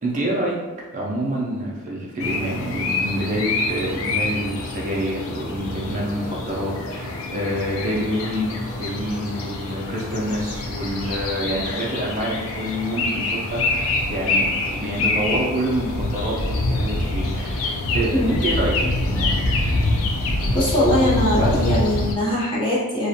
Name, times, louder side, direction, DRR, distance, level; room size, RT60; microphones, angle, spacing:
voice 1, 0.0-0.5 0.9-14.5 14.7-18.7 19.0-19.4, right 1 dB, 35° right, -4 dB, 0.4 m, -27 dB
bird chirp in the woods, 2.2-22.2, left 2 dB, 70° left, 0.4 m, -25 dB
voice 2, 20.5-23.1, left 1 dB, 25° left, -7 dB, 0.6 m, -21 dB
2.4 x 2.1 x 2.7 m, 1.2 s
head